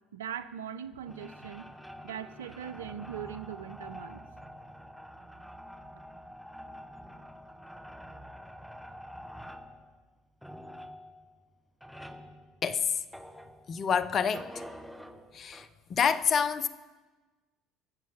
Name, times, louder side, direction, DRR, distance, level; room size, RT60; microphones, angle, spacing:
voice 1, 0.1-1.6 2.0-4.2, right 9 dB, 85° right, 0.7 m, -40 dB
sound 1, 1.1-13.9 14.3-15.7, equal, ahead, 1.4 m, -47 dB
voice 2, 12.6-13.0 13.7-14.5 15.3-16.7, left 7 dB, 45° left, 0.8 m, -28 dB
21.5 x 7.5 x 7.3 m
hypercardioid pair, 70°, 0 cm